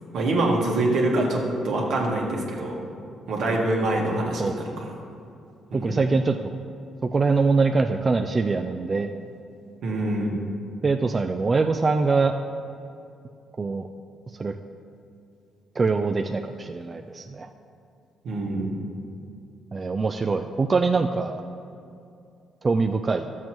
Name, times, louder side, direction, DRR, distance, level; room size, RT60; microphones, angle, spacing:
voice 1, 0.1-2.8 3.3-4.7 5.7-6.0 9.8-10.4 18.2-18.8, right 2 dB, 75° right, -2 dB, 1.6 m, -25 dB
voice 2, 5.7-6.5 7.0-9.1 10.8-12.3 13.6-13.9 14.3-14.5 15.8-17.5 19.7-21.4 22.6-23.3, right 4 dB, 35° right, 5 dB, 0.4 m, -23 dB
12.5 x 7.4 x 3.0 m, 2.5 s
cardioid pair, 90°, 0 cm